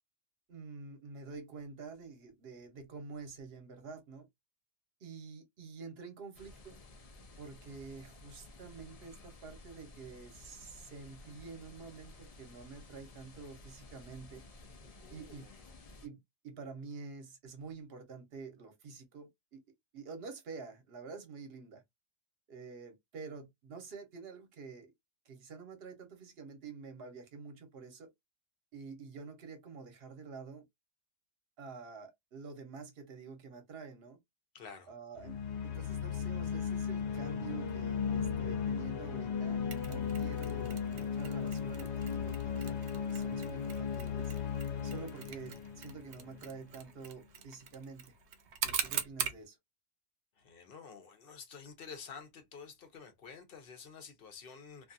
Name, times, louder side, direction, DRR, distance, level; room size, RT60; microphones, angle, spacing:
voice 1, 0.5-4.3 5.0-6.7 7.4-14.4 15.1-15.5 16.0-16.2 16.4-19.6 19.9-21.8 22.5-24.9 25.3-28.1 28.7-30.6 31.6-34.2 34.9-35.4 35.6-42.8 43.1-44.3 44.8-48.1 48.6-49.6, right 4 dB, 65° right, 1.1 m, -48 dB
sound 1, 6.3-16.1, left 2 dB, 45° left, 0.5 m, -54 dB
voice 2, 14.8-15.7 34.5-34.9 50.4-54.9, left 6 dB, 60° left, 0.9 m, -50 dB
sound 2, 35.2-46.7, left 7 dB, 85° left, 1.0 m, -36 dB
Mechanisms, 39.7-49.4, right 8 dB, 85° right, 0.9 m, -43 dB
2.6 x 2.4 x 2.6 m
omnidirectional pair, 1.1 m